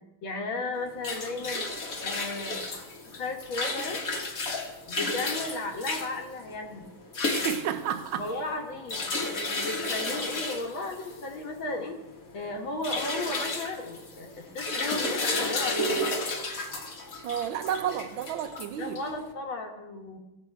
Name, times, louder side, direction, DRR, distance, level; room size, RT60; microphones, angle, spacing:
voice 1, 0.2-1.7 2.0-2.6 3.0-4.0 4.9-6.9 8.2-12.0 12.3-16.0 18.8-20.2, left 2 dB, 75° left, 2.3 m, -35 dB
sound 1, 0.8-19.3, left 2 dB, 45° left, 1.7 m, -33 dB
voice 2, 7.3-8.2 17.2-19.0, right 9 dB, 80° right, 1.5 m, -31 dB
17.0 x 7.0 x 4.6 m
omnidirectional pair, 2.2 m